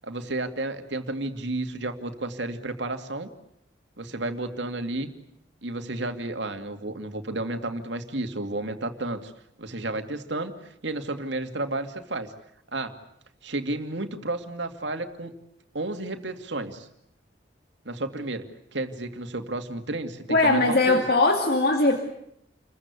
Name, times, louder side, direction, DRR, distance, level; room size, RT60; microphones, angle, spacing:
voice 1, 0.0-3.3 4.0-5.1 5.6-9.3 9.6-10.5 10.8-12.3 12.7-13.0 13.4-15.3 15.7-16.9 17.8-21.0, right 2 dB, 75° right, 6 dB, 2.5 m, -32 dB
voice 2, 20.3-22.0, left 2 dB, 55° left, 4 dB, 2.4 m, -20 dB
29.0 x 22.5 x 8.3 m, 0.75 s
head